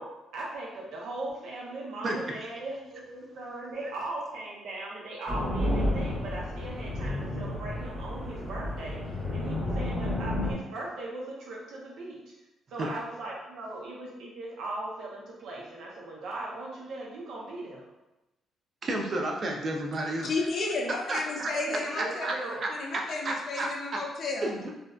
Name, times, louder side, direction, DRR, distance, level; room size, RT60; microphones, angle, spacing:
voice 1, 0.0-12.2 12.7-17.9 21.4-22.6, right 2 dB, 80° right, -4 dB, 0.7 m, -39 dB
sound 1, 5.3-10.5, left 1 dB, 15° right, 0.9 m, -31 dB
voice 2, 18.8-20.3 21.1-21.5 22.0-22.3 22.6-24.0 24.4-24.8, right 2 dB, 45° right, 1 dB, 0.4 m, -32 dB
voice 3, 20.2-22.3 22.7-24.5, left 3 dB, 60° left, -1 dB, 0.5 m, -32 dB
2.5 x 2.1 x 2.3 m, 0.99 s
cardioid pair, 95°, 0 cm